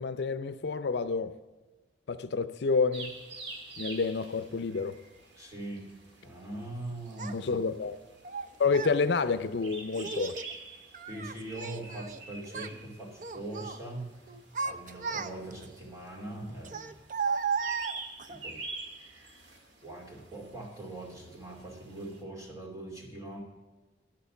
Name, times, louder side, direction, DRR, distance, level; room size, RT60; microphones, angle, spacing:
voice 1, 0.0-1.3 2.1-3.1 3.8-4.9 7.3-8.0 8.6-10.4, left 4 dB, 70° left, 0.5 m, -29 dB
sound 1, 2.9-22.2, right 3 dB, 85° right, 1.9 m, -48 dB
voice 2, 5.3-5.9 6.2-7.5 11.1-14.2 14.6-16.9 18.2-18.6 19.8-23.4, right 1 dB, 20° right, 2.7 m, -41 dB
Child speech kid speaking, 7.2-7.3 8.2-9.0 9.9-10.5 10.9-12.2 12.5-12.8 13.2-13.8 14.3-15.6 16.6-18.4, right 5 dB, 45° right, 0.5 m, -35 dB
10.5 x 6.8 x 6.9 m
head